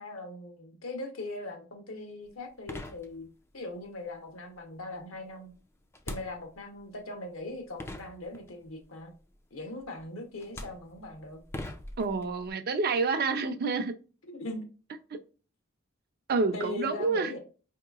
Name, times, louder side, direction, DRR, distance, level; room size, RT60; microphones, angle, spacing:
voice 1, 0.0-3.3 3.5-5.5 6.1-9.1 9.5-11.4 14.3-14.7 16.5-17.4, left 2 dB, 75° left, 0.9 m, -40 dB
sound 1, 2.3-2.4 2.7-3.6 5.9-6.8 7.5-7.6 7.8-8.7 9.8-10.0 10.4-12.5, left 1 dB, 10° left, 0.3 m, -42 dB
voice 2, 12.0-13.9 16.3-17.3, right 4 dB, 50° right, 0.5 m, -28 dB
4.6 x 2.8 x 2.4 m
head